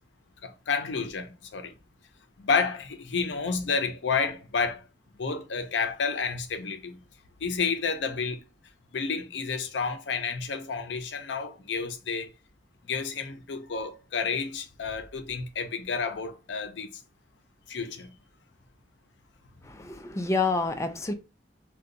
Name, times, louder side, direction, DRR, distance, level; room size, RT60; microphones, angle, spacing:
voice 1, 0.4-1.7 2.4-4.8 5.2-7.0 7.4-8.4 8.9-12.3 12.9-16.9 17.7-18.1, left 5 dB, 80° left, 0.5 m, -30 dB
voice 2, 19.6-21.1, left 3 dB, 15° left, 0.4 m, -28 dB
2.6 x 2.2 x 3.8 m
head